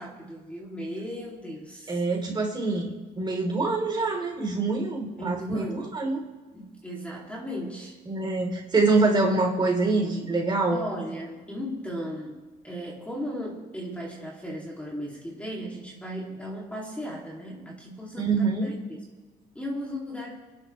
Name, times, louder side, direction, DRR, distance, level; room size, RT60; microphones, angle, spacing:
voice 1, 0.0-2.0 5.1-5.9 6.5-8.0 10.7-19.0 19.5-20.4, equal, 5° left, -3 dB, 2.8 m, -36 dB
voice 2, 1.9-2.9 3.2-6.2 8.1-10.8 18.2-18.7, right 3 dB, 25° right, -1 dB, 3.9 m, -25 dB
30.0 x 11.5 x 3.3 m, 1.3 s
cardioid pair, 110°, 17 cm